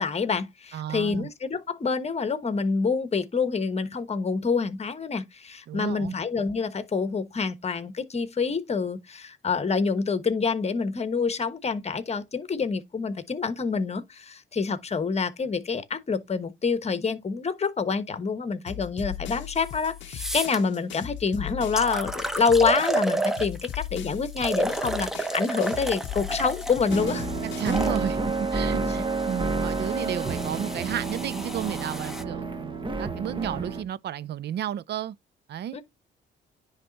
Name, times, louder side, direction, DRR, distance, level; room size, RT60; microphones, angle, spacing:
voice 1, 0.0-27.3 28.8-28.9 35.7-35.8, left 5 dB, 35° left, 1.2 m, -27 dB
voice 2, 0.7-1.3 5.7-6.1 27.4-35.2 35.5-35.8, right 10 dB, 60° right, 0.5 m, -33 dB
sound 1, 18.7-23.1 23.4-28.0, left 13 dB, 70° left, 0.6 m, -38 dB
sound 2, 19.6-19.7 20.1-20.6 21.3-21.4 21.8-23.8 24.4-28.0 28.8-32.2, right 1 dB, ahead, 1.0 m, -31 dB
sound 3, 26.9-33.8, right 3 dB, 25° right, 1.1 m, -29 dB
10.0 x 3.4 x 4.0 m
cardioid pair, 90°, 20 cm